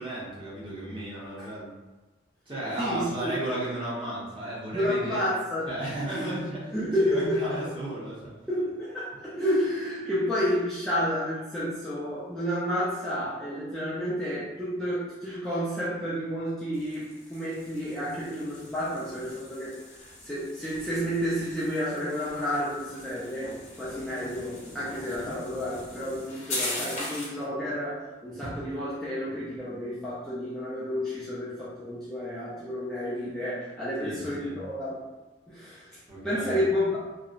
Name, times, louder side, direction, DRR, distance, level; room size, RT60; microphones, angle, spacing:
voice 1, 0.0-1.7 2.5-5.2 5.6-6.7 7.0-8.3 34.0-34.6 36.1-36.6, right 1 dB, 25° right, -7 dB, 0.7 m, -34 dB
voice 2, 2.8-3.3 4.7-5.7 6.1-7.6 8.5-23.5 23.8-35.0 35.5-37.0, equal, 5° left, -11 dB, 0.4 m, -30 dB
sound 1, 16.7-27.4, left 2 dB, 35° left, 0.7 m, -40 dB
2.7 x 2.0 x 2.5 m, 1.2 s
head